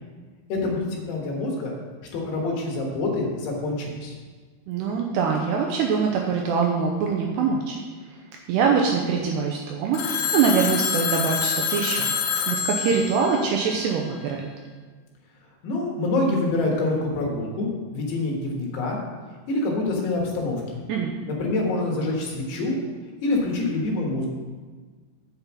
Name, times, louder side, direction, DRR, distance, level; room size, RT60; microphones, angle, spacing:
voice 1, 0.5-1.7 2.1-4.1 15.6-19.0 19.5-20.8 21.4-22.8 23.2-24.3, left 2 dB, 70° left, -1 dB, 3.4 m, -26 dB
voice 2, 4.7-7.8 8.5-12.2 12.5-14.5 20.9-21.1, right 5 dB, 80° right, 1 dB, 2.6 m, -23 dB
Telephone, 9.9-14.2, left 7 dB, 90° left, 3.2 m, -27 dB
8.1 x 5.4 x 7.3 m, 1.5 s
omnidirectional pair, 5.3 m